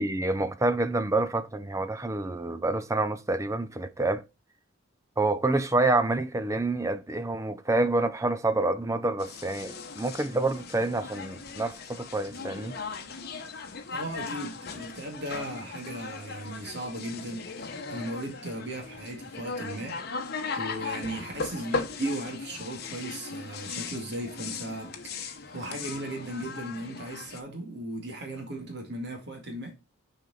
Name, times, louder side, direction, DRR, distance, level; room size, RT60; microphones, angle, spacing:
voice 1, 0.0-4.2 5.2-12.8, right 2 dB, 15° right, 0.5 m, -27 dB
sound 1, 9.2-27.4, left 4 dB, 50° left, 1.1 m, -38 dB
voice 2, 13.9-20.0 20.6-29.8, right 1 dB, 55° right, 2.3 m, -37 dB
6.7 x 5.1 x 4.2 m
head